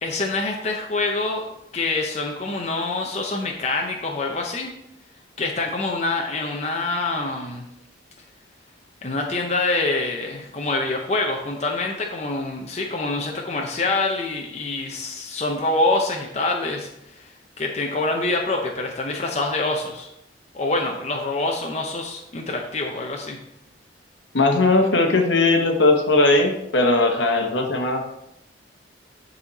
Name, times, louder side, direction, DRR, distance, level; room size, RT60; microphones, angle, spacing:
voice 1, 0.0-1.5 1.7-4.7 5.4-7.6 9.0-20.1 20.5-23.4, left 2 dB, 35° left, 1 dB, 0.7 m, -26 dB
voice 2, 24.3-28.0, left 2 dB, 75° left, 3 dB, 1.2 m, -18 dB
9.8 x 4.2 x 4.1 m, 0.83 s
head